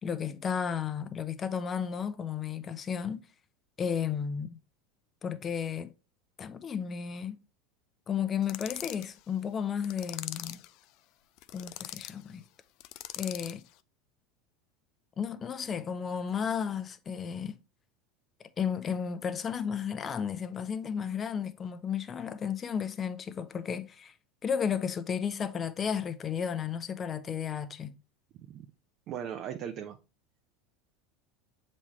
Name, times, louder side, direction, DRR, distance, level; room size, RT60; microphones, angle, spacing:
voice 1, 0.0-3.2 3.8-4.6 5.2-5.9 6.4-7.4 8.1-10.6 11.5-12.4 13.2-13.6 15.2-17.6 18.6-24.1 24.4-28.0, left 7 dB, 30° left, 0.8 m, -33 dB
sound 1, 8.4-9.1 9.8-10.7 11.4-12.1 12.8-13.6, left 15 dB, 60° left, 0.4 m, -41 dB
voice 2, 29.1-30.0, right 9 dB, 50° right, 0.7 m, -38 dB
7.1 x 4.2 x 3.2 m
hypercardioid pair, 85°, 0 cm